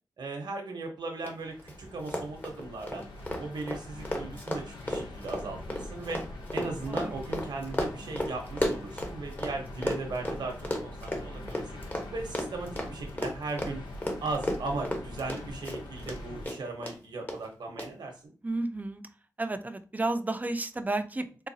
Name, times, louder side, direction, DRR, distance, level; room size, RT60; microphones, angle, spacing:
voice 1, 0.2-3.1 3.4-6.2 6.5-11.7 12.1-13.8 14.2-18.3, right 3 dB, 75° right, 2 dB, 0.9 m, -37 dB
Run, 1.2-1.3 1.6-1.7 2.0-9.5 9.8-16.2 16.4-16.9 17.3-17.4 17.8-17.9, left 1 dB, 25° left, 1.1 m, -33 dB
sound 1, 1.4-16.5, left 1 dB, 80° left, 0.7 m, -43 dB
voice 2, 6.9-7.4 18.4-19.0 19.4-21.5, right 2 dB, 20° right, 10 dB, 0.5 m, -32 dB
3.9 x 2.3 x 2.7 m, 0.37 s
cardioid pair, 45°, 7 cm